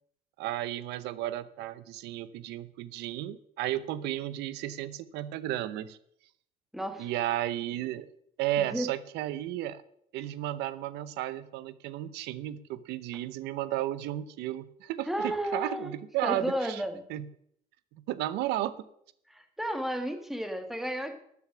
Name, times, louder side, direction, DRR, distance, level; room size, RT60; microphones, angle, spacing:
voice 1, 0.4-6.0 7.0-8.1 8.4-9.8 10.1-16.8 17.1-17.3 18.1-18.8, right 13 dB, 90° right, 16 dB, 0.8 m, -33 dB
voice 2, 6.7-7.1 8.6-8.9 15.0-15.9 16.2-17.0 19.3-21.1, equal, ahead, 6 dB, 1.7 m, -32 dB
12.5 x 7.2 x 6.2 m, 0.71 s
cardioid pair, 110°, 17 cm